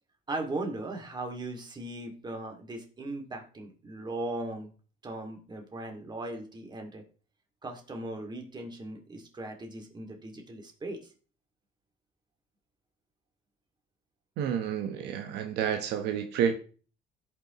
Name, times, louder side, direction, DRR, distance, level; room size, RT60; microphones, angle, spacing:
voice 1, 0.3-4.7 5.0-7.0 7.6-11.0, right 2 dB, 25° right, 3 dB, 2.2 m, -38 dB
voice 2, 14.4-16.6, right 8 dB, 80° right, 6 dB, 1.0 m, -29 dB
16.5 x 5.7 x 3.0 m, 0.38 s
cardioid pair, 110°, 17 cm